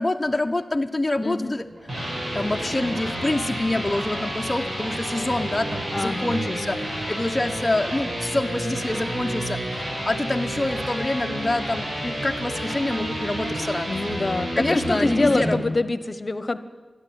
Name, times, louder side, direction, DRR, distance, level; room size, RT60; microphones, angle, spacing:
voice 1, 0.0-1.7 2.3-14.0 14.6-15.6, left 2 dB, 20° left, 2 dB, 0.9 m, -26 dB
voice 2, 1.2-1.5 5.9-6.7 13.9-16.6, left 2 dB, 40° left, 13 dB, 1.0 m, -25 dB
sound 1, 1.6-15.5, equal, 70° right, 7.0 m, -30 dB
29.0 x 11.5 x 9.3 m, 1.3 s
wide cardioid pair, 75°, 0 cm